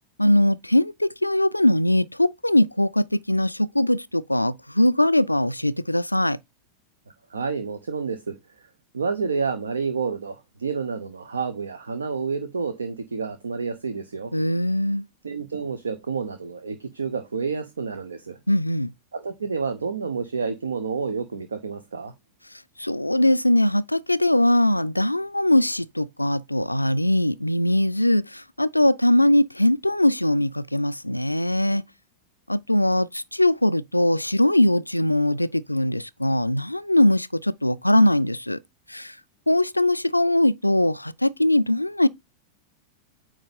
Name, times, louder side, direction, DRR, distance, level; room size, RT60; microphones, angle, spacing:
voice 1, 0.2-6.4 14.3-15.0 18.5-18.9 22.8-31.8 32.5-38.6 38.9-39.1 39.5-42.1, left 1 dB, 85° left, 0.3 m, -21 dB
voice 2, 7.3-8.4 8.9-14.3 15.2-18.4 19.1-22.1, right 5 dB, 70° right, 0.8 m, -29 dB
8.8 x 3.0 x 5.2 m
figure-of-eight pair, 90°, 0 cm